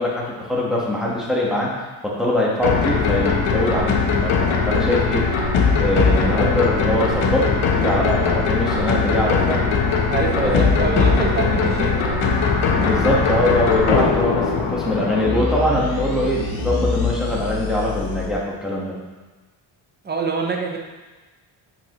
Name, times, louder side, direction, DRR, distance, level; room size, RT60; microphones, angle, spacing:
voice 1, 0.0-1.7 2.0-5.2 5.8-9.6 10.3-10.8 12.8-19.0, left 1 dB, ahead, -6 dB, 1.4 m, -22 dB
sound 1, 2.6-18.3, left 5 dB, 80° left, 1.0 m, -20 dB
voice 2, 10.1-12.0 20.0-20.8, right 4 dB, 20° right, 1 dB, 0.7 m, -25 dB
6.9 x 5.8 x 3.1 m, 1.3 s
cardioid pair, 130°, 48 cm